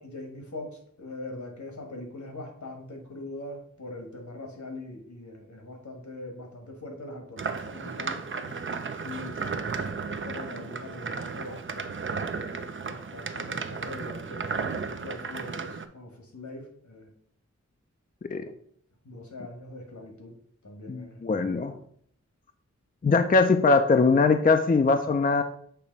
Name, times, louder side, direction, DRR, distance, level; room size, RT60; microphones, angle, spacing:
voice 1, 0.0-8.2 9.0-12.0 12.3-17.1 19.0-20.3 20.6-21.7, left 2 dB, 75° left, 2 dB, 1.6 m, -42 dB
sound 1, 7.4-15.9, right 5 dB, 45° right, 0.5 m, -34 dB
voice 2, 20.9-21.7 23.0-25.4, left 4 dB, 30° left, 7 dB, 0.4 m, -21 dB
6.7 x 2.9 x 5.2 m, 0.63 s
wide cardioid pair, 70°, 29 cm